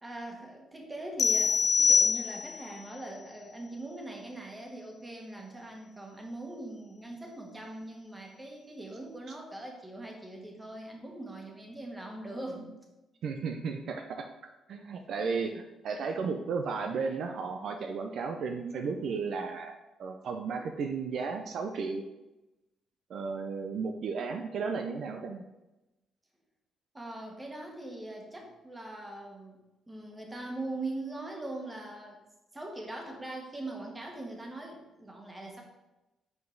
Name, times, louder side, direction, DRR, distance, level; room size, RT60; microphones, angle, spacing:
voice 1, 0.0-12.7 26.9-29.6 29.9-32.2 32.5-35.6, right 2 dB, 15° right, 0 dB, 1.4 m, -41 dB
sound 1, 1.2-2.7, left 5 dB, 45° left, 0.5 m, -24 dB
voice 2, 13.2-14.3 14.7-22.0 23.1-25.4, right 5 dB, 65° right, 5 dB, 0.5 m, -34 dB
5.3 x 4.8 x 3.9 m, 0.98 s
cardioid pair, 90°, 0 cm